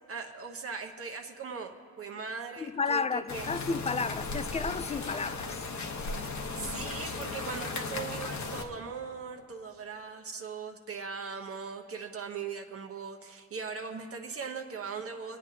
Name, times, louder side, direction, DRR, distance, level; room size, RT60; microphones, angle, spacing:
voice 1, 0.1-3.5 6.5-15.4, right 5 dB, 50° right, 0.9 m, -39 dB
voice 2, 2.6-5.7, left 4 dB, 20° left, 0.3 m, -32 dB
sound 1, 3.3-8.6, left 3 dB, 65° left, 1.1 m, -36 dB
27.0 x 9.1 x 2.8 m
cardioid pair, 100°, 30 cm